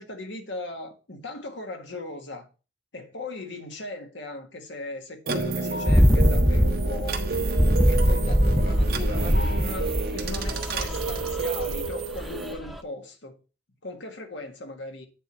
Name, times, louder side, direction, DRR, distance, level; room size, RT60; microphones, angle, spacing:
voice 1, 0.0-2.5 2.9-7.2 7.8-13.4 13.8-15.1, left 2 dB, 75° left, 1.6 m, -38 dB
sound 1, 5.3-12.5, right 3 dB, 55° right, 1.3 m, -29 dB
sound 2, 5.9-12.3 12.6-12.8, equal, ahead, 0.5 m, -22 dB
9.2 x 3.9 x 5.8 m
head